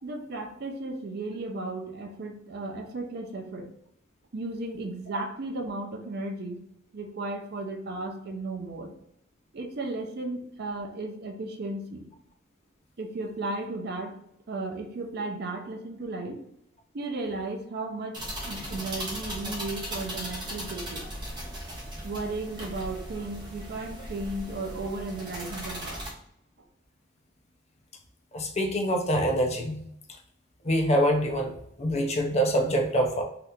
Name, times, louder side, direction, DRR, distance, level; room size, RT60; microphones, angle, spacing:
voice 1, 0.0-3.7 4.3-6.6 6.9-8.9 9.5-12.1 13.0-14.2 14.5-16.4 16.9-21.0 22.0-26.0, right 2 dB, 50° right, 3 dB, 0.5 m, -35 dB
sound 1, 18.1-26.1, equal, 20° right, 0.8 m, -37 dB
voice 2, 28.3-29.8 30.6-33.2, equal, 35° left, 3 dB, 0.5 m, -25 dB
2.8 x 2.4 x 3.4 m, 0.73 s
head